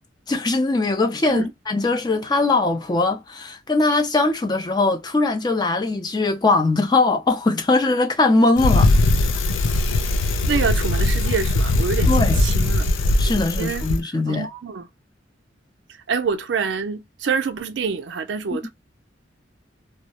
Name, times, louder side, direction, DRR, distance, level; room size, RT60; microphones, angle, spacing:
voice 1, 0.3-8.9 12.1-12.4 13.2-14.5, left 3 dB, 20° left, 0.4 m, -20 dB
Bicycle, 8.6-14.0, left 2 dB, 90° left, 0.4 m, -20 dB
voice 2, 10.5-12.9 13.6-14.9 16.1-18.7, right 5 dB, 65° right, 0.4 m, -26 dB
2.2 x 2.0 x 2.8 m
head